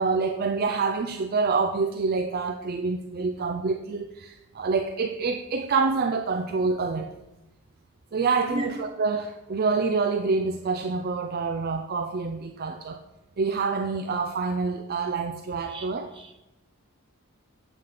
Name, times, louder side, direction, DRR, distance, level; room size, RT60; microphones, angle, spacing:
voice 1, 0.0-7.1 8.1-13.0 13.4-16.1, right 4 dB, 45° right, 6 dB, 0.4 m, -27 dB
voice 2, 8.5-8.7 15.7-15.9 16.1-16.4, equal, 25° right, 2 dB, 1.2 m, -35 dB
8.1 x 5.8 x 5.0 m, 0.93 s
head